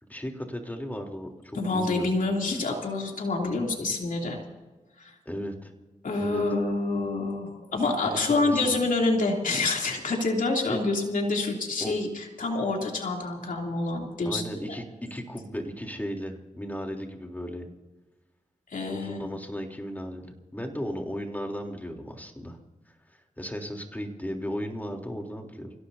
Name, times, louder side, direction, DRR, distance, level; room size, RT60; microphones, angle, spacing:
voice 1, 0.0-2.1 5.3-5.7 6.2-6.4 8.1-8.8 10.7-10.8 11.8-12.0 14.3-14.8 15.1-17.7 18.9-22.6 22.9-25.7, equal, 10° left, 2 dB, 3.5 m, -35 dB
voice 2, 1.5-4.4 5.0-5.1 6.0-14.4 18.7-19.4, left 3 dB, 85° left, 0 dB, 3.1 m, -27 dB
29.5 x 17.0 x 2.8 m, 1.2 s
cardioid pair, 55°, 14 cm